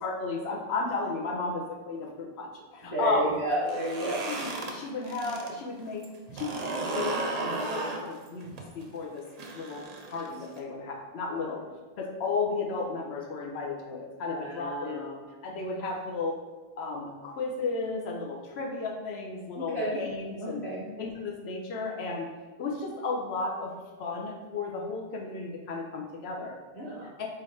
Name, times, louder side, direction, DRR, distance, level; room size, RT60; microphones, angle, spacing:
voice 1, 0.0-3.3 4.0-6.1 6.3-8.5 8.7-9.3 9.5-11.6 12.0-15.1 15.4-16.4 16.8-20.6 21.0-22.3 22.6-26.6 27.2-27.3, left 3 dB, 90° left, 0 dB, 0.9 m, -34 dB
voice 2, 2.8-4.3 11.4-11.5 14.3-15.2 19.5-20.0 20.4-20.9 26.7-27.1, right 1 dB, 45° left, -10 dB, 1.2 m, -32 dB
sound 1, 3.6-5.5 5.8-10.6, right 2 dB, 50° right, 0.5 m, -35 dB
3.8 x 2.6 x 4.1 m, 1.3 s
omnidirectional pair, 1.0 m